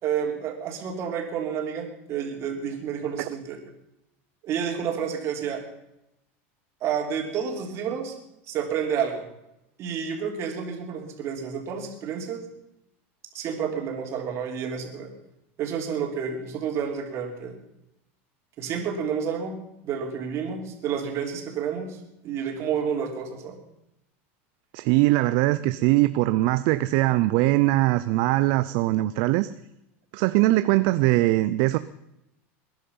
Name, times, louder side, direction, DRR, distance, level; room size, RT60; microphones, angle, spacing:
voice 1, 0.0-3.6 4.4-5.6 6.8-8.1 8.5-9.2 9.8-12.4 13.3-15.1 15.6-17.6 18.6-19.6 19.8-22.0 22.2-23.6, right 7 dB, 40° right, 3 dB, 3.5 m, -30 dB
voice 2, 24.7-29.5 30.1-31.8, right 18 dB, 60° right, 13 dB, 0.6 m, -21 dB
21.5 x 10.5 x 5.5 m, 0.85 s
supercardioid pair, 140°, 7 cm